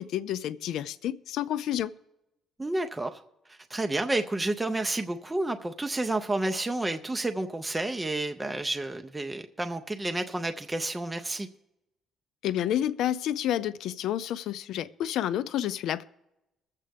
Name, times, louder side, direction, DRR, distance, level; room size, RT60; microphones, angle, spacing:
voice 1, 0.0-1.9 12.4-16.0, left 11 dB, 70° left, 15 dB, 0.5 m, -29 dB
voice 2, 2.6-3.2 3.5-11.5, right 2 dB, 10° right, 6 dB, 0.5 m, -30 dB
22.0 x 7.6 x 3.4 m, 0.91 s
cardioid pair, 165°, 0 cm